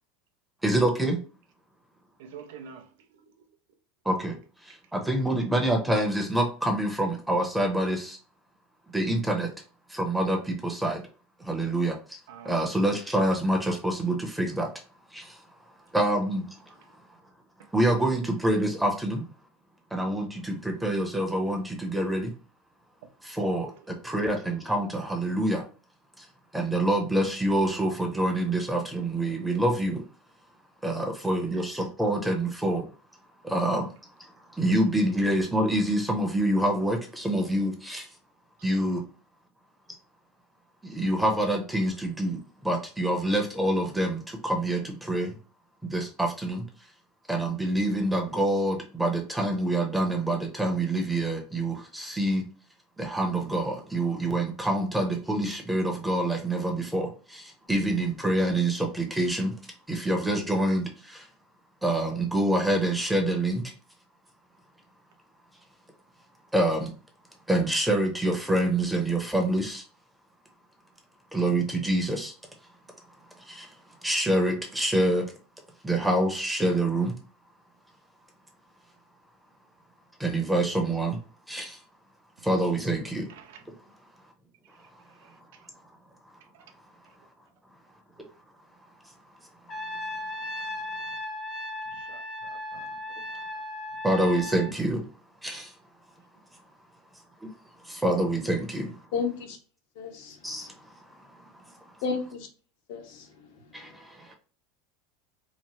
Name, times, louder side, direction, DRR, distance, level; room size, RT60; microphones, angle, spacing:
voice 1, 0.6-1.2 4.0-4.4 4.6-8.2 8.9-9.5 9.9-11.0 11.4-12.2 12.4-14.7 15.1-15.4 15.9-16.7 17.7-19.2 19.9-22.3 23.2-25.6 26.2-26.3 26.5-30.0 30.8-32.9 33.4-33.9 34.5-38.1 38.6-39.0 40.8-45.4 45.8-46.6 47.3-52.4 53.0-59.5 59.9-61.3 61.8-63.6 66.5-66.9 67.5-69.8 71.3-72.3 73.3-73.8 74.0-75.2 75.8-77.2 80.2-81.2 81.5-81.8 82.4-83.3 94.0-95.1 95.4-95.7 97.4-97.5 97.8-99.0 100.4-100.7 101.0-101.7 103.7-104.4, right 1 dB, 5° right, 0.7 m, -26 dB
voice 2, 2.2-3.5 12.3-12.6 17.6-17.7 24.1-24.2 83.3-83.6 84.6-84.8 85.1-85.7 86.5-86.7 90.1-90.2 91.9-93.4, right 7 dB, 80° right, 0.5 m, -49 dB
Trumpet, 89.7-94.8, left 1 dB, 30° left, 0.7 m, -36 dB
voice 3, 99.1-99.6 100.0-100.4 102.0-102.5 102.9-103.5, left 5 dB, 70° left, 0.7 m, -32 dB
2.9 x 2.0 x 3.0 m
supercardioid pair, 120°, 0 cm